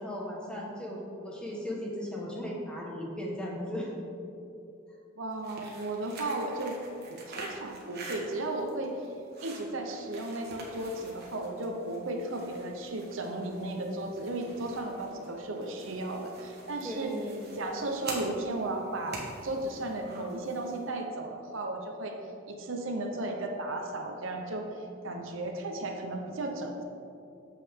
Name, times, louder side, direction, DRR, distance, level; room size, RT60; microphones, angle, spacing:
voice 1, 0.0-3.9 16.8-17.6, equal, 5° left, -3 dB, 1.3 m, -37 dB
voice 2, 5.2-6.8 7.1-9.0 9.4-17.2 17.6-22.2 22.5-24.7 25.0-26.8, right 2 dB, 75° right, 3 dB, 0.8 m, -35 dB
sound 1, 5.3-20.9, right 2 dB, 55° right, 1.4 m, -46 dB
8.4 x 7.5 x 3.6 m, 2.7 s
head